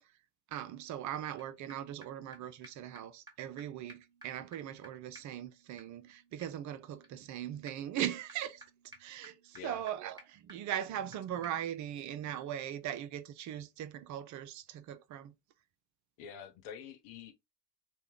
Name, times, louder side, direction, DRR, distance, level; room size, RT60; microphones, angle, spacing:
voice 1, 0.5-8.6 9.0-15.3, right 11 dB, 40° right, 0.5 m, -40 dB
sound 1, 1.4-1.5 1.7-1.8 2.0-2.1 2.3-2.4 2.6-2.7 3.0-3.1 3.3-3.4 3.6-3.7 3.9-11.2 11.4-11.5, right 1 dB, 10° right, 1.3 m, -57 dB
voice 2, 16.2-17.4, left 8 dB, 55° left, 0.8 m, -47 dB
3.1 x 2.2 x 3.5 m
hypercardioid pair, 70°, 48 cm